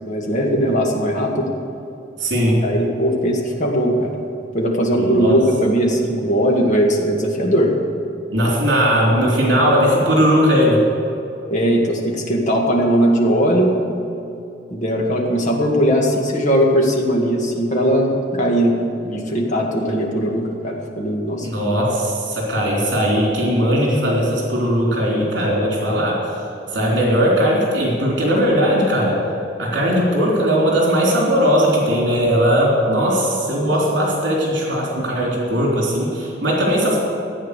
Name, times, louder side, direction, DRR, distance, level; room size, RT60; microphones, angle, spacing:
voice 1, 0.0-1.5 2.6-4.1 4.5-7.7 11.5-13.8 14.7-21.8, equal, 40° left, 0 dB, 2.0 m, -19 dB
voice 2, 2.2-2.7 5.0-5.4 8.3-10.8 21.4-26.3 26.7-29.2 29.6-37.0, equal, 65° right, -3 dB, 3.4 m, -18 dB
14.5 x 8.8 x 6.7 m, 2.7 s
head